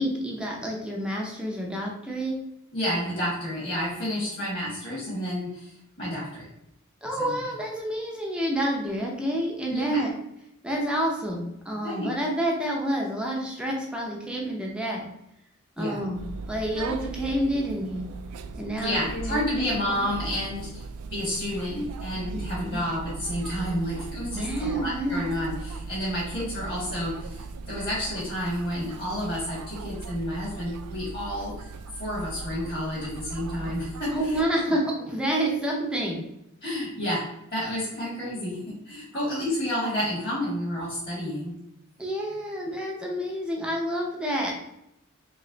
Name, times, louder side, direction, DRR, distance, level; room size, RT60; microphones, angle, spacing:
voice 1, 0.0-2.4 7.0-10.1 10.6-15.0 15.8-18.1 18.5-20.1 22.3-22.8 24.3-25.2 34.1-36.2 39.1-39.2 42.0-44.5, right 1 dB, 5° right, -2 dB, 0.6 m, -29 dB
voice 2, 2.7-6.5 7.2-7.3 9.7-10.0 11.8-12.1 15.8-16.0 18.8-20.8 21.1-34.8 36.6-41.6, equal, 40° left, -7 dB, 1.5 m, -30 dB
sound 1, 16.1-34.5, right 4 dB, 90° right, 0.3 m, -38 dB
3.2 x 2.9 x 3.8 m, 0.83 s
head